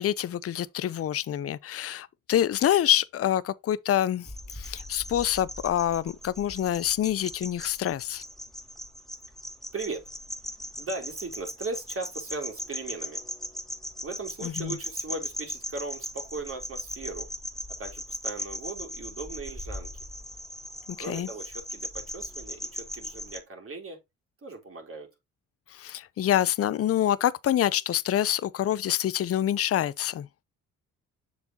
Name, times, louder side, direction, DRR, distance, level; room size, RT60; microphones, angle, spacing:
voice 1, 0.0-4.3 4.5-8.2 14.4-14.8 21.1-21.3 25.7-30.3, left 11 dB, 45° left, 0.6 m, -26 dB
sound 1, 4.3-23.4, equal, ahead, 1.3 m, -39 dB
voice 2, 9.7-10.1 10.8-13.2 14.0-17.3 17.8-19.9 21.0-24.0 24.4-25.1, right 3 dB, 40° right, 3.4 m, -38 dB
7.3 x 6.1 x 2.9 m
supercardioid pair, 70°, 33 cm